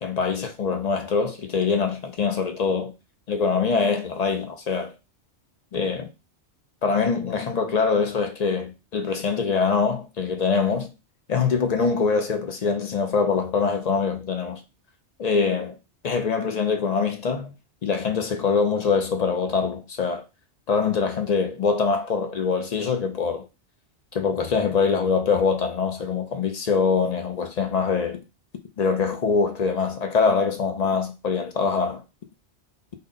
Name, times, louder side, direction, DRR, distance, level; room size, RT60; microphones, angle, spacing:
voice 1, 0.0-2.9 3.3-4.9 5.7-6.1 6.8-10.9 11.3-14.6 15.2-15.7 16.0-17.5 17.8-20.2 20.7-23.5 24.1-28.2 28.8-32.0, left 5 dB, 50° left, 0.5 m, -24 dB
3.7 x 2.1 x 3.7 m
omnidirectional pair, 1.2 m